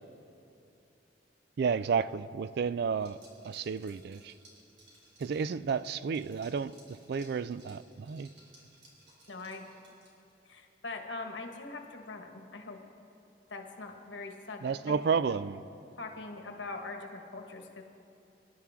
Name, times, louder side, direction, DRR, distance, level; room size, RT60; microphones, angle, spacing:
voice 1, 1.6-3.2 3.4-4.3 5.2-6.7 7.1-8.3 14.6-15.6, right 6 dB, 60° right, 16 dB, 0.3 m, -31 dB
Liquid, 3.0-10.4, right 1 dB, 75° right, 4.2 m, -60 dB
voice 2, 9.3-9.7 10.5-12.8 13.5-15.4 16.0-17.8, left 3 dB, 80° left, 3 dB, 1.4 m, -42 dB
25.5 x 11.5 x 3.6 m, 2.8 s
head